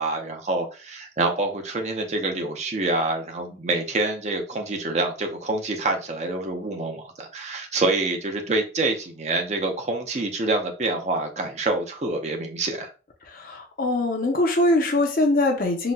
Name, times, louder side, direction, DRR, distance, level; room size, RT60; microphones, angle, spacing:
voice 1, 0.0-12.9, right 2 dB, 35° right, 3 dB, 0.5 m, -26 dB
voice 2, 13.3-15.9, left 2 dB, 50° left, 3 dB, 0.6 m, -22 dB
3.9 x 2.1 x 2.2 m, 0.34 s
head